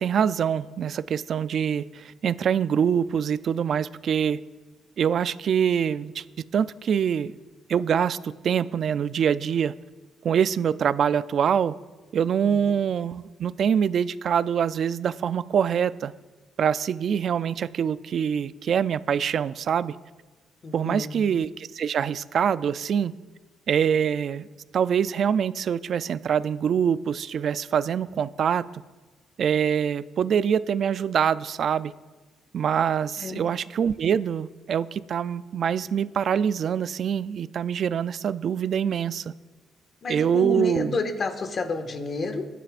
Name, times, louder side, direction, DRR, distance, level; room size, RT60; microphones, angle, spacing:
voice 1, 0.0-4.4 5.0-6.2 6.5-7.3 7.7-9.7 10.2-11.7 12.1-16.1 16.6-20.0 20.7-23.1 23.7-24.5 24.7-28.6 29.4-31.9 32.5-39.3 40.1-41.0, right 8 dB, 60° right, 16 dB, 0.4 m, -24 dB
voice 2, 20.6-21.2 33.2-33.4 40.0-42.5, left 3 dB, 45° left, 5 dB, 1.7 m, -30 dB
22.0 x 10.0 x 2.5 m, 1.3 s
cardioid pair, 90°, 0 cm